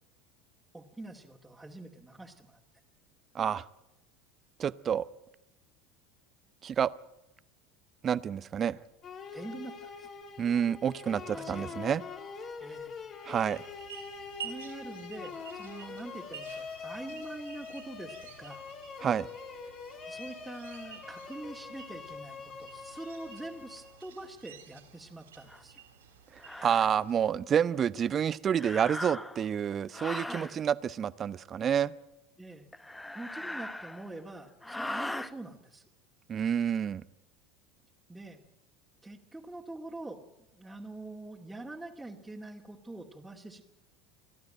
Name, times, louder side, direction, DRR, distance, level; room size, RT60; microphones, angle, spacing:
voice 1, 0.7-2.6 9.3-10.1 11.3-11.8 12.6-12.9 14.4-18.6 20.1-25.8 30.2-30.7 32.4-32.7 33.1-35.9 38.1-38.4 39.0-40.2 40.5-43.6, right 2 dB, 5° right, -4 dB, 2.4 m, -44 dB
voice 2, 4.6-5.1 6.6-6.9 8.0-8.8 10.4-12.0 13.3-13.6 19.0-19.3 26.6-31.9 36.3-37.0, right 8 dB, 35° right, 17 dB, 0.7 m, -28 dB
sound 1, 9.0-24.1, left 5 dB, 40° left, 2.4 m, -44 dB
sound 2, 13.5-27.3, right 8 dB, 85° right, 3.5 m, -51 dB
sound 3, 25.5-25.6 26.4-26.9 28.5-29.5 29.9-30.6 32.7-34.2 34.6-35.3, left 1 dB, 10° left, 1.1 m, -39 dB
29.5 x 12.0 x 9.0 m, 0.90 s
hypercardioid pair, 80°, 0 cm